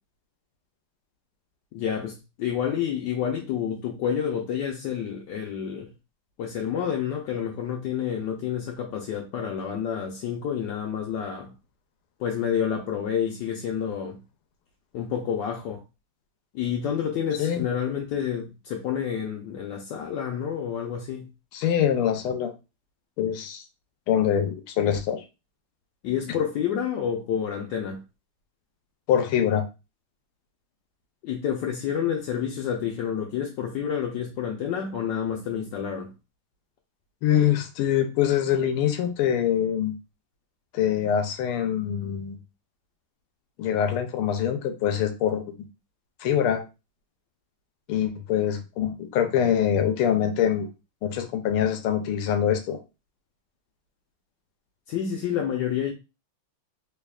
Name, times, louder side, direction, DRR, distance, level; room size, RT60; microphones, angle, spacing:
voice 1, 1.7-5.9 6.4-11.5 12.2-14.2 14.9-15.8 16.5-21.3 26.0-28.0 31.2-36.1 54.9-55.9, left 8 dB, 75° left, 1.1 m, -29 dB
voice 2, 21.5-22.5 23.2-23.6 24.1-25.2 29.1-29.6 37.2-39.9 40.7-42.4 43.6-45.5 46.2-46.6 47.9-50.7 51.0-52.8, left 9 dB, 90° left, 1.5 m, -24 dB
3.5 x 3.4 x 2.3 m
omnidirectional pair, 2.4 m